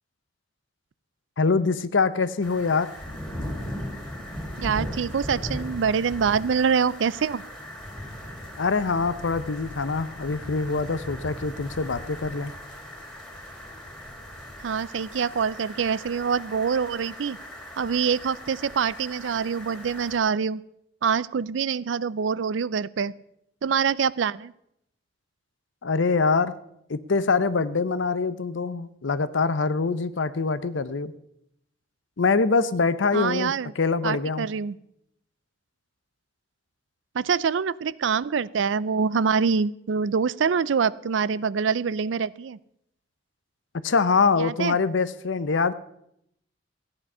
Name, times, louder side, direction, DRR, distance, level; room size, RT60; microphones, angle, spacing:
voice 1, 1.4-2.9 8.6-12.5 25.8-26.5 26.9-31.1 32.2-34.5 43.8-45.7, left 4 dB, 90° left, 14 dB, 0.7 m, -24 dB
sound 1, 2.4-20.2, equal, 5° left, 2.8 m, -38 dB
voice 2, 4.6-7.4 14.6-17.4 17.8-20.6 21.0-23.1 23.6-24.5 33.1-33.7 34.0-34.8 37.1-42.6 44.4-44.8, right 6 dB, 80° right, 20 dB, 0.4 m, -25 dB
14.5 x 9.8 x 5.5 m, 0.77 s
head